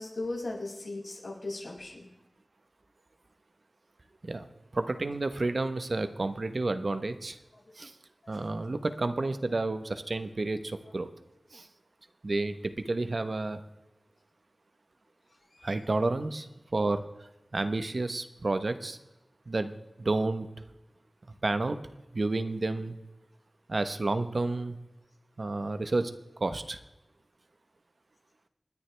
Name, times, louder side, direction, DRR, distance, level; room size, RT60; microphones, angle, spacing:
voice 1, 0.0-2.1 15.5-15.7, left 2 dB, 80° left, -4 dB, 6.3 m, -37 dB
voice 2, 4.7-7.4 7.8-7.9 8.3-11.1 11.5-11.7 12.2-13.6 15.6-16.5 16.7-19.0 19.5-20.5 21.4-21.8 22.1-23.0 23.7-24.8 25.4-26.1 26.4-26.8, right 2 dB, 60° right, 10 dB, 1.0 m, -30 dB
28.5 x 10.0 x 3.4 m, 0.99 s
wide cardioid pair, 60°, 0 cm